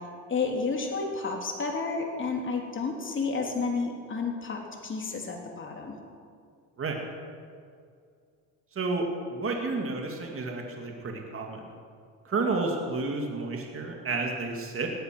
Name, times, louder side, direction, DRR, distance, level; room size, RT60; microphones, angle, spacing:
voice 1, 0.3-6.0, left 4 dB, 35° left, 1 dB, 3.3 m, -31 dB
voice 2, 8.7-11.6 12.2-14.9, right 3 dB, 35° right, 2 dB, 2.5 m, -31 dB
17.5 x 13.0 x 6.2 m, 2.3 s
cardioid pair, 95°, 36 cm